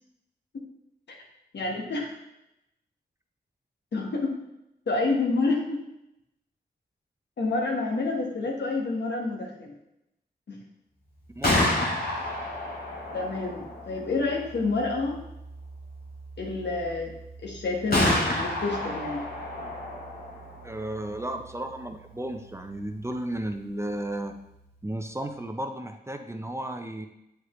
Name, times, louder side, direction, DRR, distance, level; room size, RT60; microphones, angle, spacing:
voice 1, 1.5-2.1 3.9-4.4 4.9-5.8 7.4-9.7 10.5-10.6 13.1-15.2 16.4-17.1 17.4-19.3, left 3 dB, 80° left, 0 dB, 1.4 m, -28 dB
Gunshot gunfire, 11.2-25.0, left 1 dB, 60° left, 1.9 m, -32 dB
voice 2, 11.3-11.7 20.6-24.3 24.8-27.1, right 1 dB, 15° right, 5 dB, 0.5 m, -34 dB
8.2 x 4.9 x 3.1 m, 0.85 s
wide cardioid pair, 90°, 18 cm